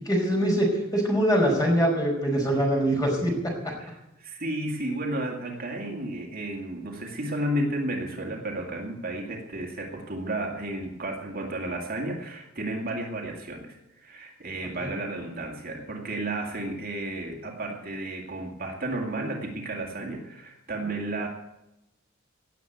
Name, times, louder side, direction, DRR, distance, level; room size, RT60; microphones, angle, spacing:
voice 1, 0.0-3.5 14.8-14.9, equal, 15° left, 0 dB, 5.1 m, -23 dB
voice 2, 3.7-21.3, right 1 dB, 45° right, 1 dB, 2.4 m, -32 dB
17.5 x 7.9 x 9.2 m, 0.90 s
head